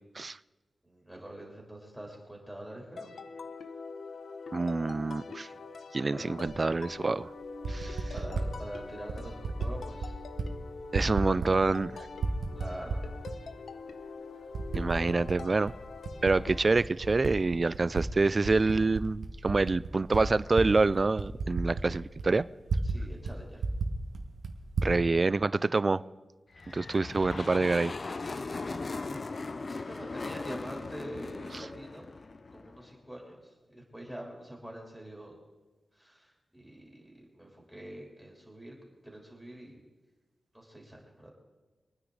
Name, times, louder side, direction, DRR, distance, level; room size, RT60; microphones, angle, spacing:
voice 1, 0.8-3.1 6.1-6.3 7.9-10.2 12.5-13.2 22.8-23.6 29.2-32.1 32.5-35.4 35.9-38.8 39.0-39.8 40.5-41.3, right 1 dB, ahead, -2 dB, 3.2 m, -45 dB
sound 1, 3.0-16.7, left 4 dB, 80° left, 0.9 m, -44 dB
voice 2, 4.5-5.5 5.9-7.3 7.7-8.0 10.9-12.1 14.7-15.7 16.2-22.4 24.8-26.0 26.7-27.9 31.5-31.6, right 3 dB, 35° right, 18 dB, 0.3 m, -27 dB
Typing, 6.5-6.6 7.4-8.5 9.1-9.7 10.0-10.5 10.8-11.9 12.2-13.4 13.9-14.0 14.5-15.4 15.7-18.1 18.4-23.0 23.2-23.3 23.6-24.9, right 4 dB, 85° right, 1.4 m, -33 dB
sound 2, 26.5-33.0, left 3 dB, 40° left, 0.5 m, -39 dB
25.0 x 9.5 x 3.9 m, 1.2 s
wide cardioid pair, 110°, 0 cm